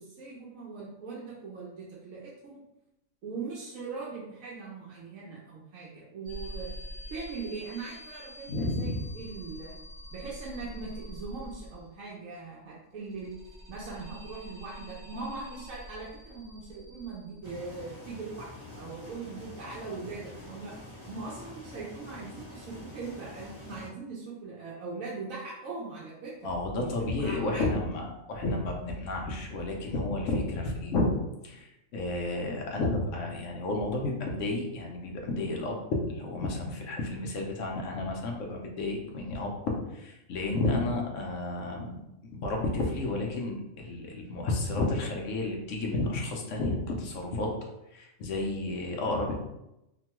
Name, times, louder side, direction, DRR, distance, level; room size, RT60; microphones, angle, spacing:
voice 1, 0.0-2.6 3.2-6.7 7.1-9.8 10.1-13.3 13.7-20.8 21.1-27.9 48.7-49.0, right 4 dB, 80° right, -6 dB, 1.0 m, -40 dB
sound 1, 6.2-12.1 12.9-17.9, left 1 dB, 55° right, 1.1 m, -45 dB
voice 2, 8.5-9.0 26.4-31.1 31.4-35.8 36.1-39.5 39.9-47.5 47.9-49.4, left 2 dB, 70° left, 0 dB, 0.9 m, -31 dB
sound 2, 17.4-23.9, left 2 dB, 15° right, 0.8 m, -46 dB
2.9 x 2.2 x 2.9 m, 0.90 s
omnidirectional pair, 1.4 m